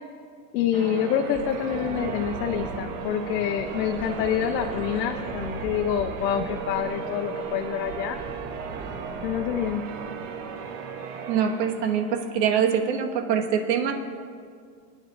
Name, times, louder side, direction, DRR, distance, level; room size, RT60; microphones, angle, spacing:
voice 1, 0.5-8.2 9.2-9.8, left 9 dB, 80° left, 5 dB, 0.9 m, -27 dB
Church bell, 0.7-13.0, right 6 dB, 45° right, 1.3 m, -36 dB
sound 1, 1.2-7.0 7.4-9.9 12.4-12.5, right 2 dB, 15° right, 3.3 m, -40 dB
voice 2, 11.3-13.9, right 7 dB, 80° right, 2 dB, 1.8 m, -24 dB
28.0 x 9.8 x 2.6 m, 2.1 s
supercardioid pair, 155°, 49 cm